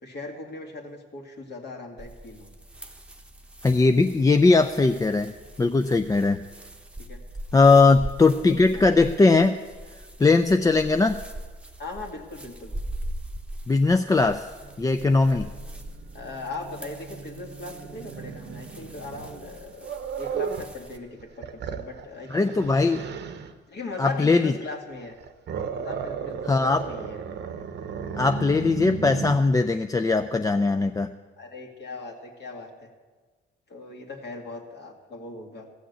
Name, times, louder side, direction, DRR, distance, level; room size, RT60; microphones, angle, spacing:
voice 1, 0.0-2.5 7.0-7.2 7.7-8.0 8.7-8.9 11.8-12.7 15.3-15.5 16.1-19.9 20.2-22.7 23.7-25.2 25.7-27.2 31.4-32.9 33.7-35.7, left 3 dB, 60° left, 2 dB, 2.1 m, -39 dB
sound 1, 2.0-21.0, right 1 dB, 5° right, 0.9 m, -41 dB
voice 2, 3.6-5.3 5.6-6.4 7.5-9.6 10.2-11.2 13.7-14.5 14.8-15.5 22.3-23.0 24.0-24.5 26.4-26.8 28.2-31.1, left 3 dB, 15° left, 7 dB, 0.4 m, -20 dB
Growling, 14.6-20.7 21.2-23.5 25.0-29.4, right 7 dB, 60° right, 0.9 m, -36 dB
14.5 x 6.4 x 8.1 m, 1.4 s
cardioid pair, 90°, 20 cm